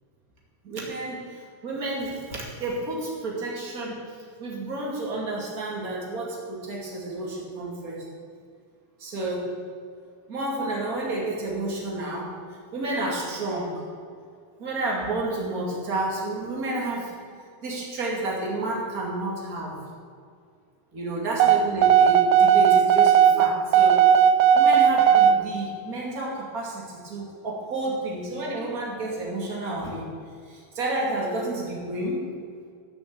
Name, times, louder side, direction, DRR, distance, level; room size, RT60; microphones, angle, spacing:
voice 1, 0.6-4.0 4.4-8.0 9.0-9.5 10.3-12.3 12.7-13.8 14.6-17.1 17.6-19.8 20.9-24.0 24.5-30.1 30.4-32.3, right 2 dB, 35° right, -3 dB, 1.3 m, -30 dB
sound 1, 21.4-25.4, right 8 dB, 85° right, 2.4 m, -16 dB
13.0 x 6.5 x 8.6 m, 2.2 s
omnidirectional pair, 5.6 m